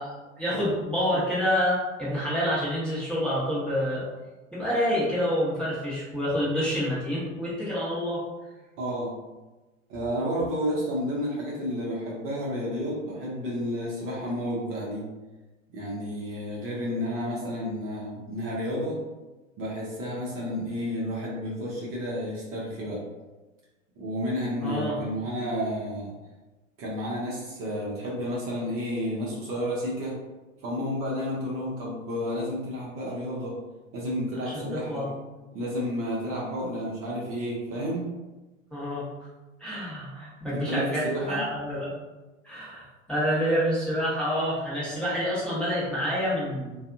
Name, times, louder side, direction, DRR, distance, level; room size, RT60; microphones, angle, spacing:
voice 1, 0.0-4.0 4.5-8.2 24.6-25.0 34.4-35.1 38.7-39.1 39.6-41.9 42.4-46.8, equal, ahead, -10 dB, 0.9 m, -28 dB
voice 2, 8.8-9.1 9.9-15.1 15.7-19.0 19.6-23.0 24.0-26.1 26.8-30.2 30.6-33.5 33.9-35.1 35.5-38.1 40.5-41.4, equal, 35° right, -5 dB, 0.8 m, -31 dB
2.6 x 2.3 x 2.5 m, 1.2 s
figure-of-eight pair, 90°, 39 cm